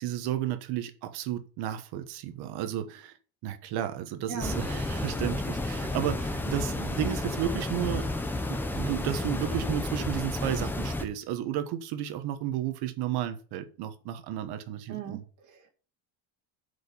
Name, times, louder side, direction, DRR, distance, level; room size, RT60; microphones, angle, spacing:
voice 1, 0.0-3.1 3.4-8.1 8.5-15.2, right 11 dB, 55° right, 1.3 m, -33 dB
sound 1, 4.4-11.0, left 2 dB, 5° left, 0.4 m, -31 dB
voice 2, 14.9-15.7, right 7 dB, 40° right, 2.6 m, -39 dB
8.0 x 5.2 x 7.1 m
cardioid pair, 175°, 47 cm